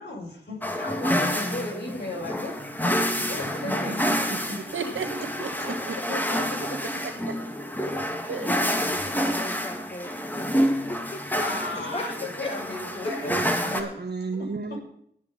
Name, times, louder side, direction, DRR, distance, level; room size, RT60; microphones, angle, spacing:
voice 1, 0.0-2.6 3.2-4.6 6.1-6.2 6.9-7.0 8.6-8.7 11.3-13.4 13.6-14.0 14.4-14.5, left 2 dB, 55° left, -3 dB, 6.0 m, -35 dB
sound 1, 0.6-13.8, equal, 10° left, 2.1 m, -28 dB
voice 2, 3.6-4.4 5.9-6.0 13.2-14.8, right 4 dB, 55° right, 2 dB, 1.4 m, -35 dB
voice 3, 4.7-6.4 7.0-7.3 8.3-8.6 11.7-12.0 12.5-12.9, right 5 dB, 80° right, 8 dB, 1.6 m, -36 dB
voice 4, 8.3-11.4 11.9-12.0 12.4-12.5 13.3-13.7, left 1 dB, 30° left, 3 dB, 1.7 m, -37 dB
19.0 x 6.4 x 5.5 m, 0.70 s
cardioid pair, 45°, 20 cm